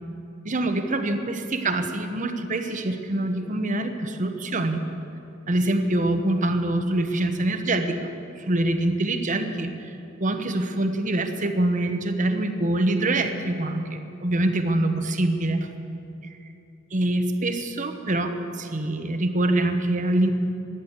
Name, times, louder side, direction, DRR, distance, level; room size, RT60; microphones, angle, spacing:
voice 1, 0.4-4.8 5.5-8.1 8.4-9.9 10.2-15.7 16.9-20.3, right 1 dB, 40° right, 7 dB, 1.1 m, -25 dB
14.5 x 10.5 x 8.1 m, 2.8 s
head